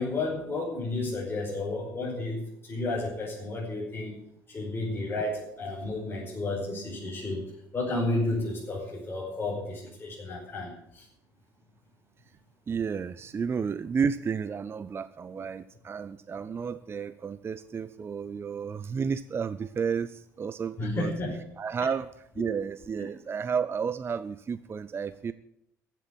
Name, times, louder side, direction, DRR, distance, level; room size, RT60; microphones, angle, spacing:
voice 1, 0.0-4.2 4.5-7.4 7.7-11.1 20.8-21.3 21.8-21.9 22.4-22.5, left 2 dB, 25° left, -5 dB, 5.3 m, -32 dB
voice 2, 12.7-21.1 21.6-22.1 22.3-25.3, right 6 dB, 25° right, 14 dB, 0.6 m, -32 dB
15.0 x 7.6 x 9.6 m, 0.75 s
figure-of-eight pair, 60°, 9 cm